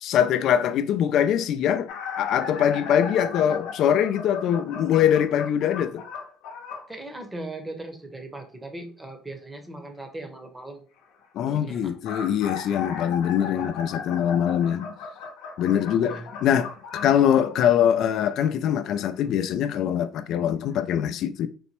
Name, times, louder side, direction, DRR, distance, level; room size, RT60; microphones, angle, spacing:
voice 1, 0.0-1.9 2.2-6.0 11.3-14.9 15.6-21.5, left 9 dB, 60° left, 0.3 m, -23 dB
sound 1, 1.9-6.9 11.8-17.9 19.0-19.2 20.2-20.3 20.7-20.8, left 6 dB, 80° left, 0.7 m, -37 dB
voice 2, 6.9-10.8 11.4-11.9 13.5-13.7 15.9-16.3, right 2 dB, 15° right, 0.8 m, -39 dB
4.0 x 2.1 x 2.9 m
supercardioid pair, 100°, 0 cm